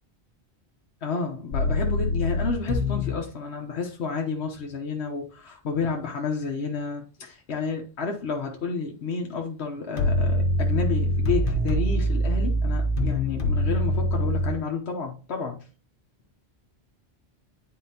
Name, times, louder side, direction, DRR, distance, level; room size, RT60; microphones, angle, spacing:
voice 1, 1.0-15.6, left 5 dB, 80° left, 1.3 m, -31 dB
sound 1, 1.5-3.2 10.0-14.5, equal, 55° left, 1.2 m, -24 dB
9.5 x 4.4 x 2.8 m
omnidirectional pair, 1.1 m